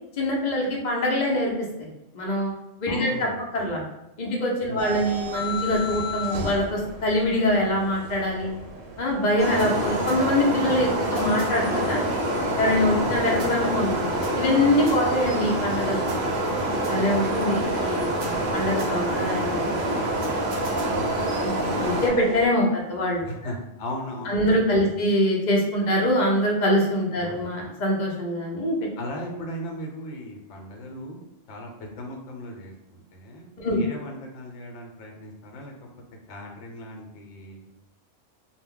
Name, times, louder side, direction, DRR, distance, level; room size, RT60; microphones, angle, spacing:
voice 1, 0.2-1.5 2.1-2.5 2.8-3.8 4.2-8.5 9.0-12.0 12.6-16.1 16.8-19.9 21.4-23.2 24.3-28.8 33.6-33.8, left 1 dB, 50° left, -1 dB, 0.6 m, -24 dB
voice 2, 2.9-3.9 4.6-5.0 12.9-13.4 20.9-21.3 23.3-25.0 27.1-27.5 29.0-35.9 36.3-37.7, left 1 dB, 70° left, 1 dB, 0.9 m, -38 dB
sound 1, 4.8-22.5, equal, 80° right, 1.0 m, -37 dB
sound 2, 9.4-22.1, right 1 dB, 55° right, 0.5 m, -26 dB
2.2 x 2.0 x 3.6 m, 0.92 s
omnidirectional pair, 1.3 m